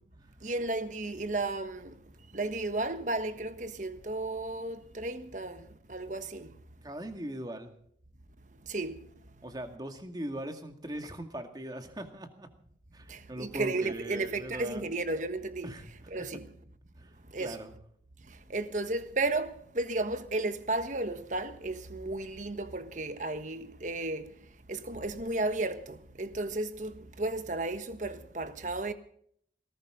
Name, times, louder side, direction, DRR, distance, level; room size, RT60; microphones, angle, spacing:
voice 1, 0.4-2.0 2.3-5.6 5.9-6.5 8.7-9.0 13.1-15.7 16.1-16.5 17.3-17.6 18.5-24.3 24.7-28.9, right 2 dB, 45° right, 1.4 m, -33 dB
voice 2, 6.8-7.7 9.4-12.5 12.9-14.8 15.6-16.3 17.0-17.7, right 1 dB, 20° right, 2.1 m, -40 dB
19.5 x 18.0 x 3.8 m
head